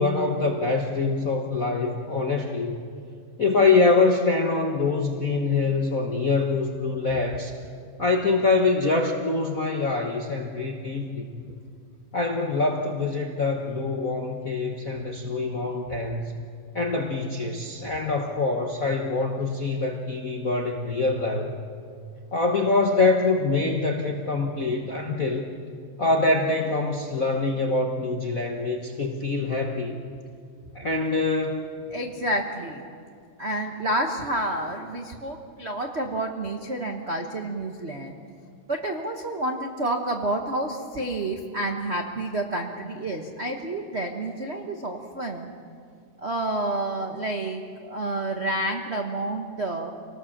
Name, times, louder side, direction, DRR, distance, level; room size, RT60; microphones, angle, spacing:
voice 1, 0.0-2.8 3.4-7.5 8.0-11.3 12.1-16.4 16.7-21.5 22.3-25.5 26.0-30.0 30.7-31.7, left 3 dB, 55° left, 2 dB, 0.9 m, -24 dB
voice 2, 31.9-32.8 33.4-38.2 38.7-45.5 46.2-49.9, right 1 dB, 55° right, 3 dB, 0.7 m, -29 dB
26.5 x 19.0 x 7.3 m, 2.3 s
omnidirectional pair, 3.4 m